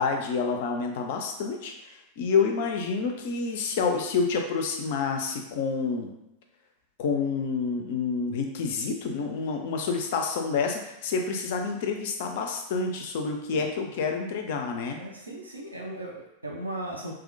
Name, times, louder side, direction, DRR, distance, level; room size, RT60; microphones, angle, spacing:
voice 1, 0.0-6.1 7.0-15.0, left 5 dB, 50° left, 4 dB, 0.3 m, -28 dB
voice 2, 13.5-13.9 15.0-17.1, right 1 dB, 80° right, -2 dB, 0.5 m, -37 dB
2.4 x 2.1 x 2.5 m, 0.90 s
figure-of-eight pair, 90°, 0 cm